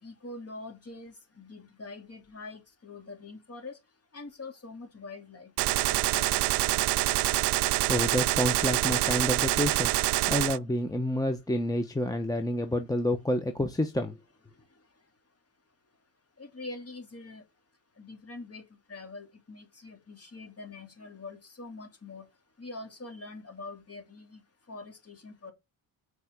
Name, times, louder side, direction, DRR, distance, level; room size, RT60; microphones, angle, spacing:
voice 1, 0.0-3.8 4.1-5.5 5.9-6.9 16.4-17.4 18.0-22.3 22.6-24.4 24.7-25.5, left 3 dB, 35° left, 3.3 m, -44 dB
Gunshot gunfire, 5.6-10.6, right 18 dB, 70° right, 0.5 m, -26 dB
voice 2, 7.9-9.9 10.3-14.2, left 1 dB, 10° left, 1.1 m, -29 dB
6.9 x 4.9 x 6.6 m
cardioid pair, 90°, 43 cm